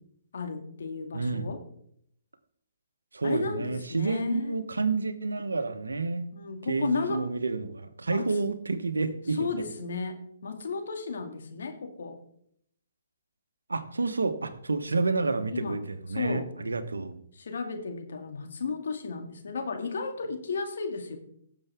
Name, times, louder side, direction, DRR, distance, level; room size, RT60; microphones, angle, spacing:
voice 1, 0.3-1.6 3.2-4.6 6.3-7.2 8.1-8.3 9.4-12.2 15.5-15.8 16.1-16.5 17.3-21.2, left 4 dB, 65° left, 5 dB, 2.1 m, -34 dB
voice 2, 1.1-1.5 3.1-6.3 6.7-9.5 13.7-17.2, right 3 dB, 85° right, 10 dB, 1.2 m, -29 dB
17.5 x 7.2 x 3.6 m, 0.68 s
figure-of-eight pair, 135°, 0 cm